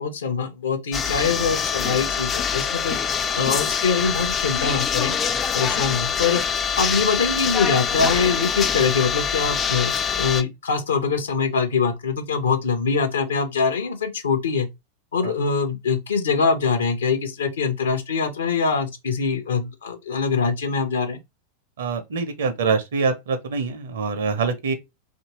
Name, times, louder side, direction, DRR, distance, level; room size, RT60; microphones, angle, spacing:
voice 1, 0.0-3.0 3.3-5.2 5.5-6.4 6.8-14.7 15.1-21.2, left 5 dB, 65° left, 0.6 m, -23 dB
sound 1, 0.9-10.4, left 7 dB, 25° left, 0.3 m, -24 dB
voice 2, 21.8-24.7, right 5 dB, 60° right, 0.6 m, -25 dB
2.8 x 2.6 x 2.9 m
figure-of-eight pair, 90°, 0 cm